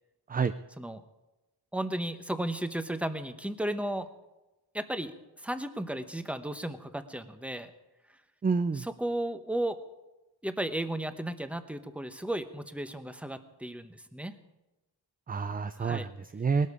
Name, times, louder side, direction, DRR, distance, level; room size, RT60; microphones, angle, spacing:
voice 1, 1.7-4.1 4.7-5.1 5.4-7.7 8.8-9.8 10.4-14.3 15.8-16.1, right 1 dB, 5° right, 10 dB, 0.9 m, -34 dB
voice 2, 8.4-8.8 15.3-16.7, right 5 dB, 20° right, 11 dB, 0.4 m, -28 dB
19.5 x 12.0 x 4.9 m, 1.0 s
wide cardioid pair, 115°, 43 cm